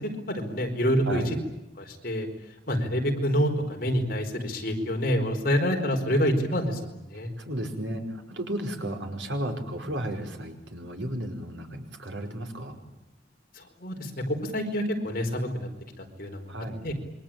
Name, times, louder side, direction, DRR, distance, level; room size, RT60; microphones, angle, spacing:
voice 1, 0.3-1.2 1.8-2.3 2.7-7.3 13.6-15.7 16.0-16.5 16.8-16.9, equal, 50° left, 4 dB, 4.4 m, -27 dB
voice 2, 7.4-12.8 16.5-16.8, right 1 dB, 85° right, 4 dB, 5.0 m, -34 dB
27.5 x 23.5 x 9.0 m, 0.94 s
head